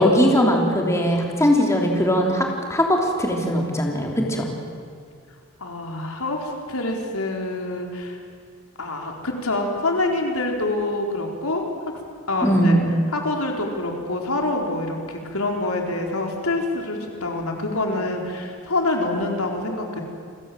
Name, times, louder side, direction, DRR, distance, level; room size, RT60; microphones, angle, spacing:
voice 1, 0.0-4.4 12.4-12.9, equal, 15° left, 0 dB, 3.4 m, -20 dB
voice 2, 5.6-8.2 8.8-11.6 12.3-12.8 13.1-20.0, left 2 dB, 85° left, 2 dB, 4.2 m, -26 dB
29.0 x 22.5 x 7.7 m, 2.2 s
head